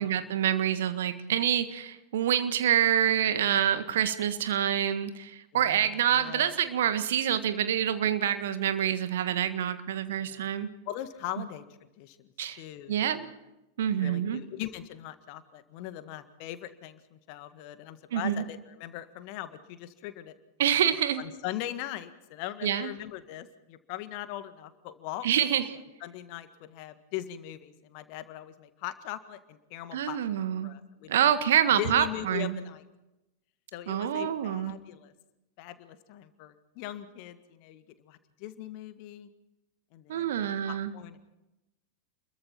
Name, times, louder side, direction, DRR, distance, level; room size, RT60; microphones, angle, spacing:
voice 1, 0.0-10.7 12.4-12.6 12.9-13.3 13.8-14.4 18.1-18.4 20.6-21.2 22.6-22.9 25.2-25.7 29.9-30.7 31.1-32.6 33.9-34.7 40.1-40.9, right 10 dB, 60° right, 10 dB, 1.7 m, -27 dB
voice 2, 5.5-6.5 10.2-10.5 10.9-11.7 12.0-13.3 14.0-20.3 21.2-25.5 26.0-31.3 31.8-32.8 33.7-35.1 35.6-39.3 39.9-41.3, left 13 dB, 45° left, 11 dB, 1.7 m, -40 dB
29.0 x 22.5 x 4.4 m, 0.96 s
figure-of-eight pair, 90°, 0 cm